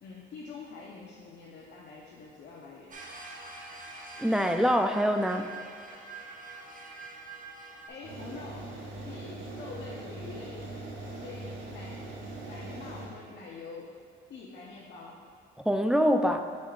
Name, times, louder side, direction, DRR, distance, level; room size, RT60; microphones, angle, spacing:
voice 1, 0.0-3.0 7.9-8.8 9.0-10.7 11.0-12.0 12.4-13.9 14.3-15.2, left 4 dB, 60° left, -4 dB, 0.8 m, -45 dB
sound 1, 2.9-7.9, right 3 dB, 40° right, 0.8 m, -45 dB
voice 2, 4.2-5.5 15.6-16.4, equal, 5° right, 6 dB, 0.3 m, -24 dB
sound 2, 8.0-13.1, right 2 dB, 85° right, 1.0 m, -41 dB
7.0 x 6.4 x 2.4 m, 2.2 s
cardioid pair, 90°, 20 cm